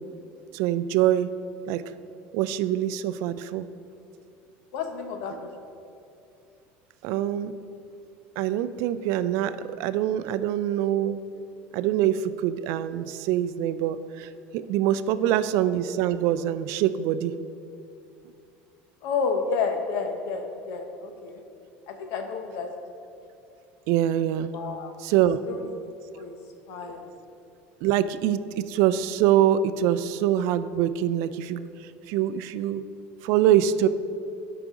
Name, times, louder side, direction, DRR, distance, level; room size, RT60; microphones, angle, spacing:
voice 1, 0.5-1.3 1.7-1.8 2.3-3.7 7.0-7.5 8.4-11.2 11.7-17.3 23.9-24.5 25.0-25.5 27.8-32.9 33.2-33.9, right 11 dB, 70° right, 14 dB, 0.3 m, -24 dB
voice 2, 4.7-5.5 19.0-21.4 21.9-22.7 24.5-24.9 25.5-25.6 26.1-26.3 26.7-27.1, left 5 dB, 70° left, 5 dB, 1.0 m, -30 dB
12.5 x 4.9 x 3.7 m, 2.6 s
supercardioid pair, 125°, 5 cm